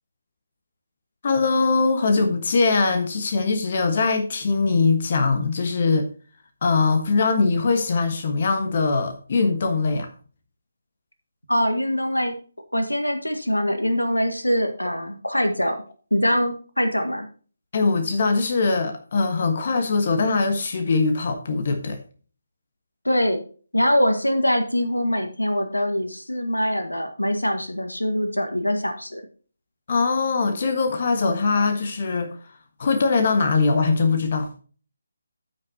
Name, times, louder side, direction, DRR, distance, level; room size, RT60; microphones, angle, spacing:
voice 1, 1.2-6.1 6.6-10.1 17.7-22.0 29.9-32.3 32.8-34.5, left 4 dB, 40° left, 1.4 m, -21 dB
voice 2, 11.5-12.3 12.7-15.8 16.1-17.3 23.0-23.4 23.7-29.2, equal, 85° left, 1.7 m, -23 dB
14.0 x 6.0 x 2.8 m
figure-of-eight pair, 150°, 0 cm